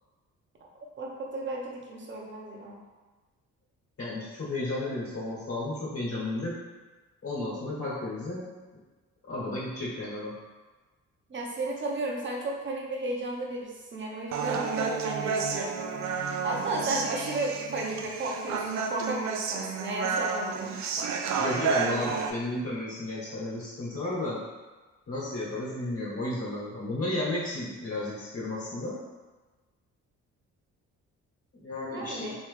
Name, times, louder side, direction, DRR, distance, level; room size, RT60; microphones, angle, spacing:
voice 1, 1.0-2.8 11.3-15.7 16.4-20.7 31.9-32.4, right 2 dB, 40° right, -1 dB, 0.8 m, -33 dB
voice 2, 4.0-6.6 7.2-8.5 9.3-10.3 21.4-24.4 25.1-29.0 31.6-32.3, left 2 dB, 50° left, -6 dB, 1.3 m, -33 dB
Human voice, 14.3-22.3, right 5 dB, 65° right, 0.5 m, -31 dB
3.0 x 3.0 x 3.3 m, 1.3 s
cardioid pair, 90°, 30 cm